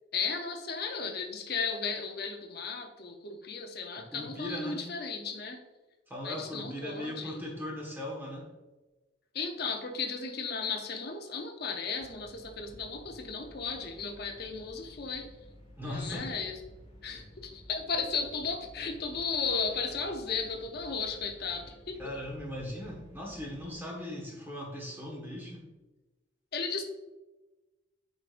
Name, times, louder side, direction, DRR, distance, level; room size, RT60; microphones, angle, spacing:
voice 1, 0.1-5.6 6.2-7.4 9.3-15.3 15.8-16.6 17.0-22.0 26.5-26.8, left 5 dB, 50° left, 3 dB, 0.7 m, -35 dB
voice 2, 4.0-4.9 6.1-8.5 15.8-16.4 22.0-25.6, left 1 dB, 10° right, -3 dB, 1.4 m, -39 dB
sound 1, 12.0-23.7, equal, 25° left, 1.6 m, -53 dB
8.4 x 5.2 x 2.5 m, 1.1 s
head